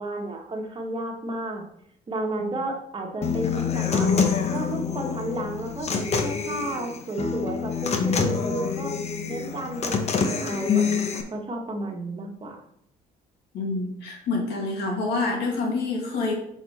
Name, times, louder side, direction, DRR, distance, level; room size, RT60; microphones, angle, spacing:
voice 1, 0.0-1.6 2.1-4.1 4.5-8.9 9.2-12.6, right 1 dB, 30° right, 1 dB, 1.3 m, -32 dB
Human voice / Acoustic guitar, 3.2-11.2, left 6 dB, 40° left, 0.9 m, -26 dB
voice 2, 13.5-16.3, left 3 dB, 80° left, 0 dB, 1.9 m, -27 dB
6.2 x 4.1 x 4.2 m, 0.71 s
cardioid pair, 110°, 17 cm